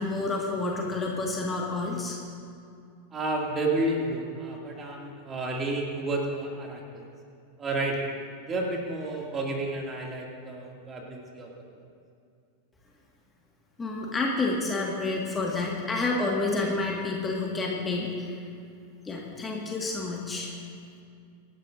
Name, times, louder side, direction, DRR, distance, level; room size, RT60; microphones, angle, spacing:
voice 1, 0.0-2.2 13.8-18.3 19.0-20.5, left 3 dB, 15° left, -2 dB, 1.8 m, -29 dB
voice 2, 3.1-7.0 7.6-8.1 8.4-11.8, right 2 dB, 20° right, -1 dB, 2.3 m, -31 dB
25.0 x 12.0 x 2.6 m, 2.4 s
figure-of-eight pair, 90°, 0 cm